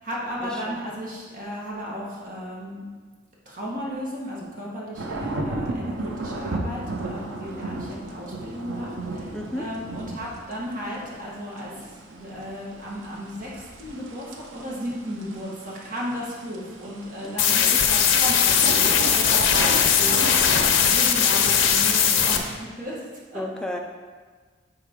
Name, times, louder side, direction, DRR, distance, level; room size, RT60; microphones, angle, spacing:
voice 1, 0.0-2.8 3.4-23.0 23.3-23.4, equal, 45° right, -5 dB, 1.6 m, -34 dB
sound 1, 4.9-22.3, right 2 dB, 90° right, 0.8 m, -35 dB
voice 2, 9.3-9.7 17.2-17.8 23.3-23.8, left 1 dB, 5° left, 1 dB, 0.4 m, -33 dB
sound 2, 17.4-22.4, left 8 dB, 80° left, 0.6 m, -19 dB
9.6 x 3.9 x 3.7 m, 1.4 s
head